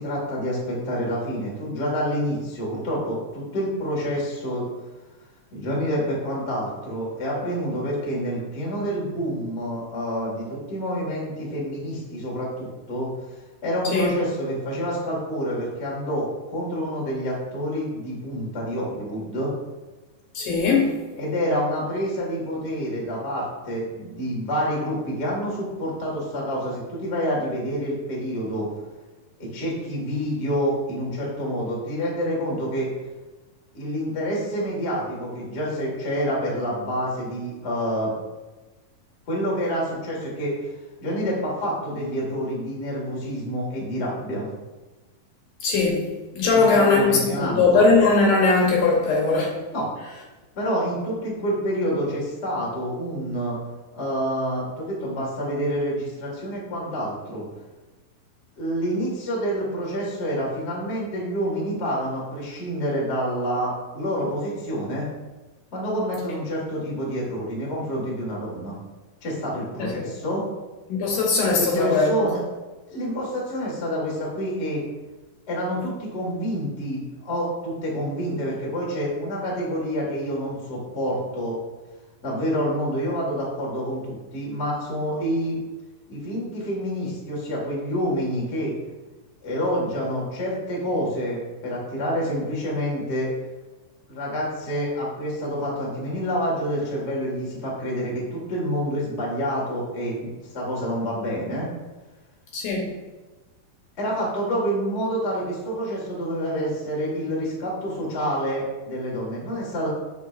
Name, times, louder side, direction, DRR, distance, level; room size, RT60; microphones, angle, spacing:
voice 1, 0.0-4.7 5.5-13.1 13.6-16.3 16.5-19.5 21.1-28.7 29.4-32.9 33.7-38.1 39.3-40.5 41.0-44.5 46.5-47.9 49.7-49.9 50.5-53.6 53.9-57.5 58.6-65.1 65.7-68.8 69.2-70.4 71.6-72.4 72.9-74.8 75.5-81.6 82.2-85.6 86.1-88.7 89.4-93.3 94.1-100.1 100.5-101.7 104.0-109.9, equal, 40° left, 0.9 m, -27 dB
voice 2, 20.3-21.0 45.6-49.6 69.8-70.1 70.9-72.3 102.5-102.9, left 3 dB, 70° left, 2.3 m, -20 dB
8.0 x 5.9 x 2.5 m
omnidirectional pair, 4.3 m